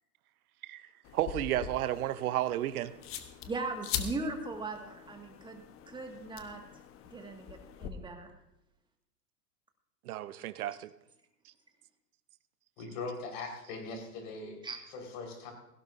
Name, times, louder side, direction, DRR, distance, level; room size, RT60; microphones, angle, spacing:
voice 1, 0.6-2.9 10.0-10.9, right 13 dB, 65° right, 15 dB, 0.8 m, -33 dB
sound 1, 1.0-7.9, left 9 dB, 30° left, 1.1 m, -42 dB
voice 2, 3.5-6.6 7.0-8.3 14.6-14.8, right 3 dB, 10° right, 3 dB, 1.8 m, -39 dB
voice 3, 12.8-14.6 14.9-15.5, left 3 dB, 50° left, 3 dB, 4.5 m, -40 dB
17.0 x 16.5 x 2.6 m, 0.84 s
hypercardioid pair, 115°, 47 cm